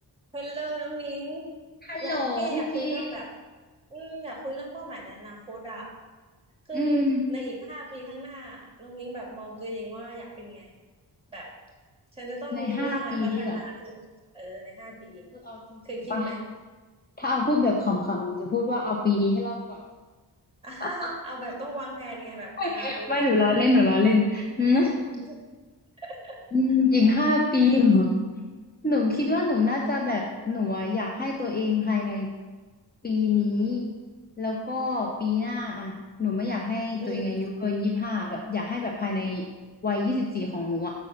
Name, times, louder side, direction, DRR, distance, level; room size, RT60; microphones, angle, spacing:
voice 1, 0.3-1.5 2.0-3.3 3.9-5.9 6.7-10.7 11.3-11.5 12.1-14.1 14.3-15.2 15.8-16.4 20.6-23.2 25.1-25.4 26.0-26.4 37.0-37.3, right 1 dB, 15° right, -2 dB, 2.3 m, -37 dB
voice 2, 1.8-3.1 6.7-7.2 12.5-13.6 15.4-15.8 16.1-16.2 17.2-19.8 20.8-20.9 22.6-24.9 26.5-28.1 28.3-28.4 28.8-32.3 33.0-33.9 34.4-35.9 36.2-39.4 39.8-40.9, left 3 dB, 20° left, -1 dB, 0.9 m, -25 dB
6.5 x 5.5 x 6.5 m, 1.3 s
wide cardioid pair, 90°, 42 cm